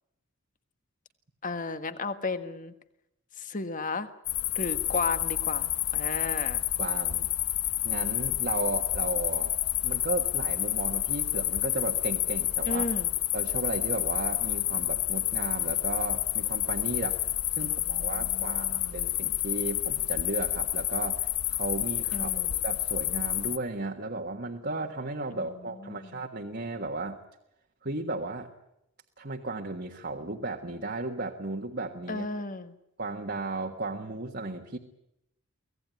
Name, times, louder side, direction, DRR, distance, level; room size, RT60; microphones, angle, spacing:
voice 1, 1.4-2.7 3.4-4.1 4.5-6.6 12.7-13.1 17.6-19.1 22.1-22.6 25.3-26.2 32.1-32.7, left 3 dB, 35° left, 10 dB, 1.5 m, -34 dB
sound 1, 4.2-23.6, left 13 dB, 90° left, 1.2 m, -29 dB
voice 2, 6.8-7.3 7.8-9.5 9.8-12.9 13.3-17.2 17.5-27.2 27.8-28.5 29.2-32.3 33.0-34.8, right 2 dB, 45° right, 2 dB, 1.5 m, -35 dB
24.5 x 17.5 x 9.6 m, 0.83 s
head